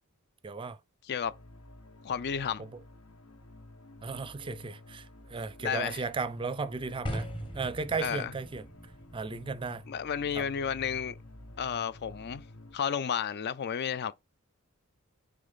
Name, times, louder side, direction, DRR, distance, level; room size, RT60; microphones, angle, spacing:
voice 1, 0.4-0.8 2.6-2.7 4.0-7.3 7.5-8.7 9.1-9.8 10.4-10.5, right 4 dB, 25° right, 0.4 m, -35 dB
sound 1, 1.2-12.8, left 1 dB, 80° left, 1.0 m, -51 dB
voice 2, 2.0-2.6 5.6-6.0 8.0-8.3 9.9-11.2 11.6-12.4 12.7-14.1, left 7 dB, 50° left, 0.4 m, -32 dB
sound 2, 7.1-13.2, equal, 25° left, 1.2 m, -44 dB
6.4 x 3.9 x 4.0 m
head